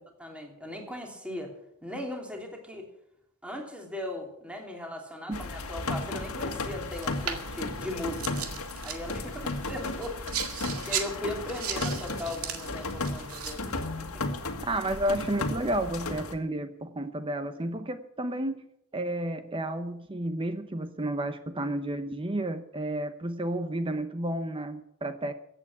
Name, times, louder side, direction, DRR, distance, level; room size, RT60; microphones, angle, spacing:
voice 1, 0.2-1.5 1.8-2.9 3.4-8.5 8.8-10.2 10.9-13.7 14.0-14.2, left 1 dB, 5° right, 1 dB, 3.0 m, -38 dB
sound 1, 5.3-16.3, left 2 dB, 80° left, 1.8 m, -34 dB
sound 2, 6.9-13.8, right 8 dB, 80° right, 2.0 m, -38 dB
voice 2, 14.7-18.7 18.9-25.3, right 1 dB, 25° right, 9 dB, 0.8 m, -31 dB
15.0 x 8.5 x 8.6 m, 0.76 s
head